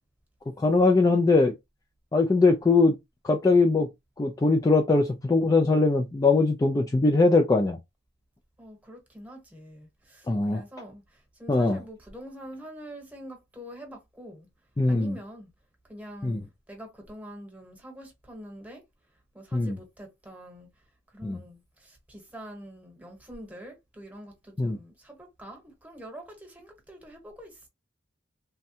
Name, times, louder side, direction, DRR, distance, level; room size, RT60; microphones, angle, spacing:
voice 1, 0.6-1.5 2.1-2.9 3.2-3.9 4.2-7.8 10.3-10.6 11.5-11.8 14.8-15.2 16.2-16.4 19.5-19.8 21.2-21.4 24.6-24.8, left 3 dB, 20° left, 0.3 m, -21 dB
voice 2, 8.6-10.3 10.5-11.0 11.4-14.5 14.9-15.5 15.9-16.4 16.7-18.8 19.3-20.7 21.1-27.7, equal, 10° right, 1.1 m, -45 dB
3.4 x 2.1 x 2.7 m
head